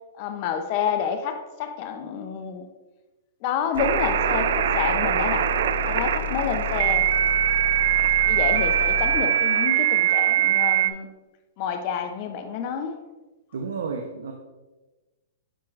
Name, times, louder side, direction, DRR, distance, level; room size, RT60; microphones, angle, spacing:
voice 1, 0.2-2.7 3.4-5.5 5.8-7.1 8.3-11.1 11.6-13.0, left 7 dB, 40° left, 0.6 m, -29 dB
sound 1, 3.7-9.3, left 9 dB, 80° left, 0.8 m, -33 dB
sound 2, 3.8-10.9, right 12 dB, 60° right, 0.3 m, -22 dB
voice 2, 13.5-14.3, right 5 dB, 80° right, 0.7 m, -31 dB
10.0 x 4.4 x 2.5 m
hypercardioid pair, 155°, 0 cm